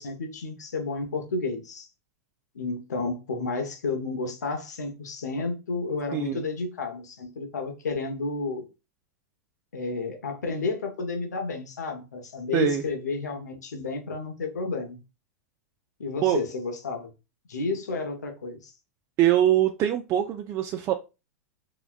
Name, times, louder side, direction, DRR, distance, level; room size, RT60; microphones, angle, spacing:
voice 1, 0.0-1.9 2.5-8.7 9.7-15.0 16.0-17.1 17.5-18.7, left 3 dB, 90° left, 0.9 m, -31 dB
voice 2, 6.1-6.4 12.5-12.8 16.2-16.4 19.2-20.9, right 11 dB, 35° right, 0.3 m, -23 dB
3.9 x 2.2 x 2.3 m
hypercardioid pair, 110°, 9 cm